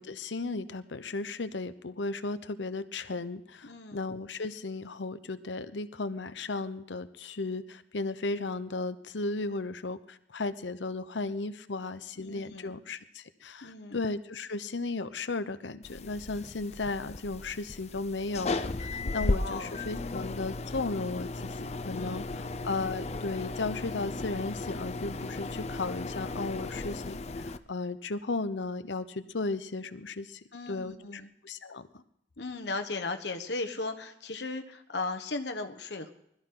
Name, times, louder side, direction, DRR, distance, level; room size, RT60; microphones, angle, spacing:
voice 1, 0.0-22.2 22.6-27.2 27.4-32.0, left 3 dB, 85° left, 13 dB, 0.9 m, -35 dB
voice 2, 3.6-4.0 12.2-12.7 13.6-14.0 19.0-19.8 21.9-22.5 30.5-31.3 32.4-36.1, left 3 dB, 70° left, 6 dB, 1.3 m, -37 dB
sound 1, 15.8-27.6, left 2 dB, 35° left, 0.6 m, -35 dB
21.0 x 13.5 x 3.9 m, 0.75 s
head